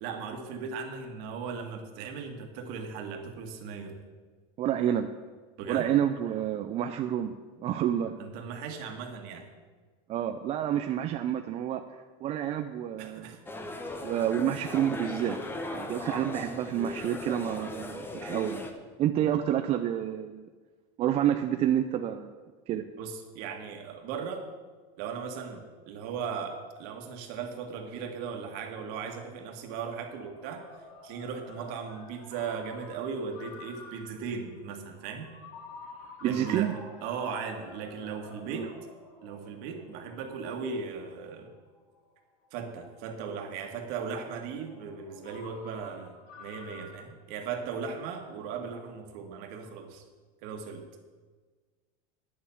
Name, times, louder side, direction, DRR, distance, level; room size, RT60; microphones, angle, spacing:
voice 1, 0.0-4.0 5.6-5.9 8.2-9.5 13.0-13.4 23.0-24.4 25.0-30.6 31.0-35.3 36.2-36.7 37.0-38.7 39.2-41.5 42.5-50.0 50.4-50.9, right 6 dB, 55° right, 4 dB, 1.8 m, -37 dB
voice 2, 4.6-5.1 5.7-7.3 7.6-8.1 10.1-13.4 14.0-15.4 15.7-18.6 19.0-20.5 21.0-22.3 22.7-22.8 36.2-36.7 38.5-38.7, right 10 dB, 35° right, 7 dB, 0.5 m, -29 dB
sound 1, 13.5-18.7, left 1 dB, 10° left, 1.0 m, -38 dB
Ringtone, 27.3-47.0, left 3 dB, 45° left, 3.6 m, -51 dB
10.0 x 7.1 x 7.2 m, 1.4 s
supercardioid pair, 145°, 18 cm